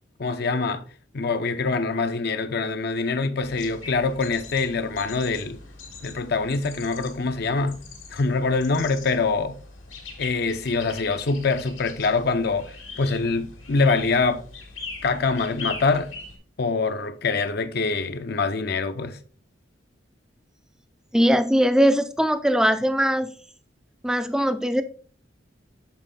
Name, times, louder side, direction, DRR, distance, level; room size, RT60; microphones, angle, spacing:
voice 1, 0.2-0.8 1.1-5.6 6.0-7.8 8.1-9.6 10.2-14.4 15.0-16.1 16.6-19.2, left 4 dB, 55° left, 0.6 m, -24 dB
sound 1, 3.4-16.4, left 4 dB, 85° left, 2.1 m, -41 dB
voice 2, 21.1-23.3 24.0-24.8, equal, 5° right, 0.4 m, -20 dB
7.6 x 4.5 x 3.8 m
head